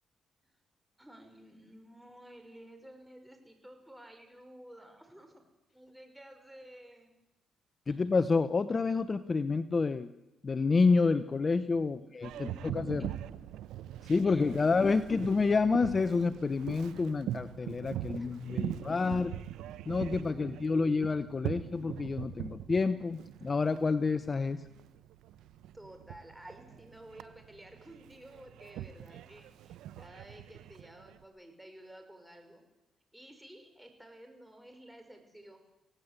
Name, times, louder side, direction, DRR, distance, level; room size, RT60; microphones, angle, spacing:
voice 1, 1.0-5.4 5.7-7.1 7.9-8.0 12.0-12.1 12.4-13.1 14.2-14.8 18.0-19.2 19.8-20.8 25.7-32.6 33.1-35.6, right 1 dB, 5° right, 5 dB, 5.4 m, -53 dB
voice 2, 7.9-10.1 10.4-13.1 14.1-19.3 19.9-24.6, left 4 dB, 35° left, 12 dB, 0.9 m, -29 dB
Boat Water vehicle, 12.2-31.2, right 12 dB, 85° right, 0.8 m, -42 dB
25.5 x 17.5 x 8.2 m, 0.91 s
cardioid pair, 90°, 0 cm